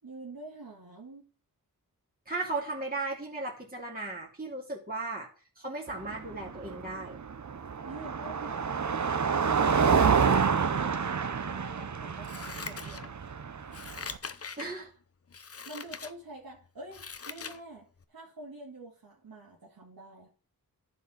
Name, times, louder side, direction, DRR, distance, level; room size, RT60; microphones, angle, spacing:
voice 1, 0.0-1.2 7.8-8.9 10.6-13.2 15.7-20.3, right 2 dB, 70° right, -3 dB, 2.3 m, -46 dB
voice 2, 2.3-5.3 5.6-7.2 14.6-14.9, right 2 dB, 25° right, -3 dB, 2.8 m, -36 dB
Car passing by, 5.9-14.2, right 6 dB, 50° right, 0.8 m, -28 dB
Scissors, 12.2-13.3 13.7-14.7 15.3-16.1 16.6-17.6 18.0-18.1, left 5 dB, 40° left, 0.7 m, -42 dB
11.0 x 4.7 x 6.5 m, 0.38 s
cardioid pair, 50°, 37 cm